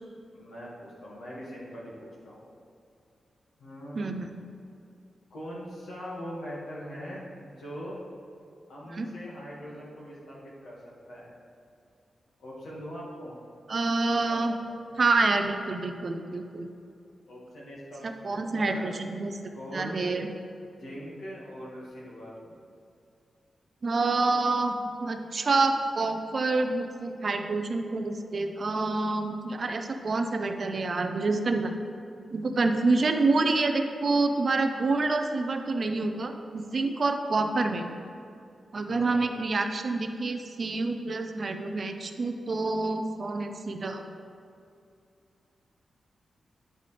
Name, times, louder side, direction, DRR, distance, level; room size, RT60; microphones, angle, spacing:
voice 1, 0.3-2.4 3.6-4.1 5.3-8.0 8.7-11.3 12.4-13.3 14.2-15.0 17.3-18.9 19.5-20.3 20.8-22.6 38.9-39.3, equal, 80° left, -5 dB, 1.8 m, -42 dB
voice 2, 3.9-4.3 8.9-9.1 13.7-14.6 15.0-16.7 18.2-19.3 19.7-20.3 23.8-31.7 32.3-37.9 38.7-44.1, right 3 dB, 40° right, 6 dB, 0.4 m, -27 dB
9.6 x 5.3 x 3.3 m, 2.5 s
wide cardioid pair, 170°, 0 cm